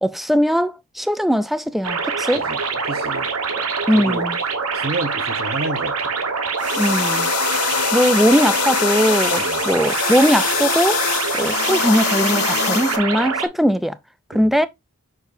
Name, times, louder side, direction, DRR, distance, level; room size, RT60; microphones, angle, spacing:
voice 1, 0.0-2.4 3.9-4.3 6.8-7.3 7.9-11.0 11.4-14.0 14.3-14.7, equal, ahead, 0.4 m, -19 dB
sound 1, 1.8-13.5, right 5 dB, 70° right, 1.3 m, -24 dB
voice 2, 2.8-3.3 3.9-4.3 4.7-6.2 9.4-9.7 14.3-14.5, right 2 dB, 45° right, 1.0 m, -30 dB
sound 2, 6.6-13.0, left 7 dB, 80° left, 1.2 m, -23 dB
6.8 x 6.2 x 2.6 m
head